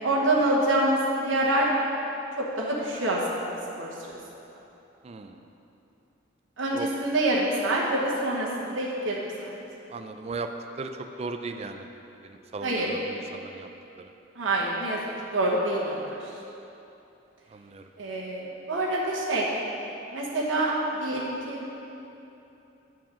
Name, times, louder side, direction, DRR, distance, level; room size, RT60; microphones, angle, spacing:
voice 1, 0.0-1.7 2.4-3.5 3.8-4.2 6.6-9.5 12.6-12.9 14.4-15.0 15.3-16.3 18.0-19.5 20.1-21.6, right 1 dB, 85° right, -4 dB, 1.0 m, -26 dB
voice 2, 5.0-5.4 6.7-6.9 9.9-10.5 10.8-11.9 12.2-13.7 14.0-14.1 17.5-17.9, right 3 dB, 35° right, 6 dB, 0.4 m, -37 dB
7.4 x 4.7 x 6.2 m, 2.9 s
head